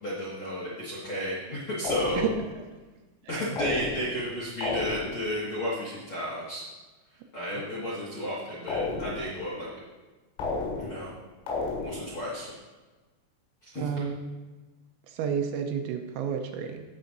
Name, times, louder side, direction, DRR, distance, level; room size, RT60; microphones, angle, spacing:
voice 1, 0.0-2.3 3.3-6.6 7.3-9.7 10.8-11.1 11.8-12.5 13.6-13.9, equal, 70° left, -8 dB, 1.2 m, -33 dB
sound 1, 1.8-2.6 3.6-4.3 4.6-5.3 8.7-9.4 10.4-11.1 11.5-12.2, left 3 dB, 85° left, 4.4 m, -32 dB
voice 2, 13.8-14.3 15.1-16.8, right 7 dB, 80° right, 5 dB, 2.9 m, -31 dB
16.5 x 6.8 x 2.6 m, 1.2 s
omnidirectional pair, 5.6 m